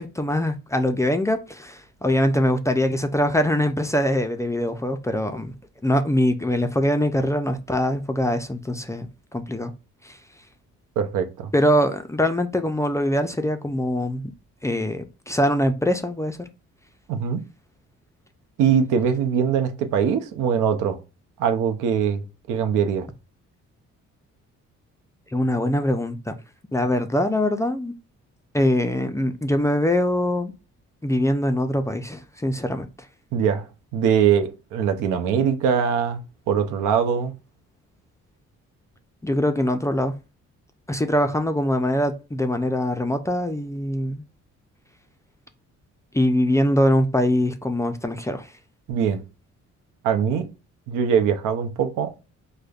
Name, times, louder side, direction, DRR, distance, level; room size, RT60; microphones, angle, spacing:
voice 1, 0.0-5.5 5.8-9.1 9.3-9.7 10.0-10.2 11.5-14.3 14.6-16.5 25.3-26.3 26.7-27.9 28.5-30.5 31.0-32.9 39.2-40.1 40.9-44.2 46.1-48.5, left 1 dB, 10° left, 0.3 m, -23 dB
voice 2, 11.0-11.5 17.1-17.4 18.6-21.0 21.4-22.2 22.5-23.1 33.3-33.7 33.9-36.2 36.5-37.3 48.9-49.2 50.0-50.5 50.9-52.1, right 7 dB, 90° right, 0.6 m, -22 dB
4.9 x 2.1 x 2.3 m
cardioid pair, 90°, 30 cm